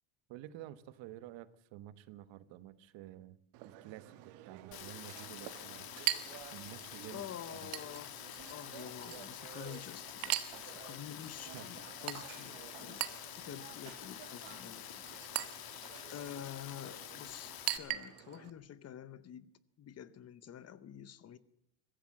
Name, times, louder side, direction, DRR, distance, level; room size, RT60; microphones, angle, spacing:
voice 1, 0.3-3.4 3.6-5.9 6.5-7.2 7.5-7.7 11.3-11.9, right 13 dB, 65° right, 1.2 m, -50 dB
Chink clink, 3.5-18.5, right 16 dB, 85° right, 1.6 m, -43 dB
Rain, 4.7-17.8, left 12 dB, 45° left, 1.6 m, -48 dB
voice 2, 7.1-8.2 8.5-10.4 10.6-13.1 13.4-15.0 16.1-19.5 19.8-21.4, left 10 dB, 30° left, 0.8 m, -48 dB
23.0 x 15.0 x 7.5 m
cardioid pair, 165°, 49 cm